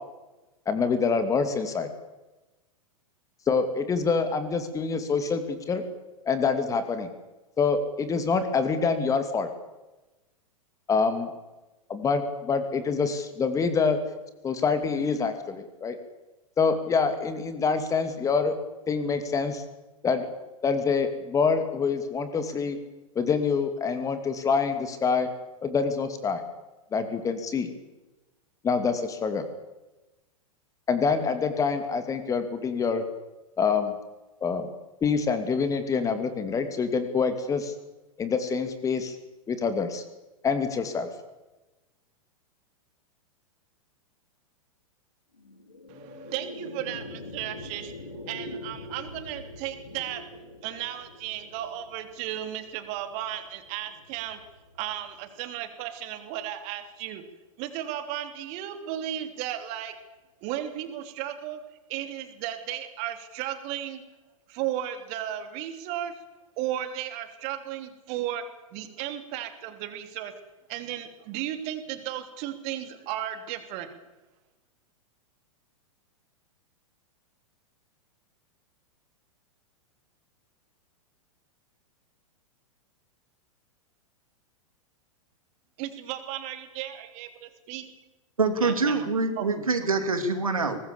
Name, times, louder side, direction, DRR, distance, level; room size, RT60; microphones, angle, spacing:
voice 1, 0.7-1.9 3.5-5.8 6.3-7.1 7.6-9.5 10.9-11.3 11.9-14.0 14.4-16.0 16.6-18.5 18.9-19.6 20.0-20.3 20.6-22.8 23.1-25.3 25.6-26.4 26.9-27.7 28.6-29.4 30.9-33.0 33.6-34.0 34.4-34.7 35.0-37.7 38.2-39.2 39.5-40.0 40.4-41.1, left 5 dB, 20° left, 10 dB, 2.5 m, -26 dB
sound 1, 45.3-55.9, left 2 dB, 80° left, 4.0 m, -44 dB
voice 2, 45.9-50.2 50.6-54.4 54.8-57.2 57.6-59.9 60.4-61.6 61.9-64.0 64.5-66.1 66.6-68.4 68.7-70.3 70.7-73.9 85.8-87.9 88.6-89.7, right 12 dB, 40° right, 9 dB, 3.2 m, -35 dB
voice 3, 88.4-90.8, right 3 dB, 75° right, 8 dB, 3.0 m, -25 dB
23.0 x 20.0 x 7.0 m, 1.1 s
figure-of-eight pair, 100°, 18 cm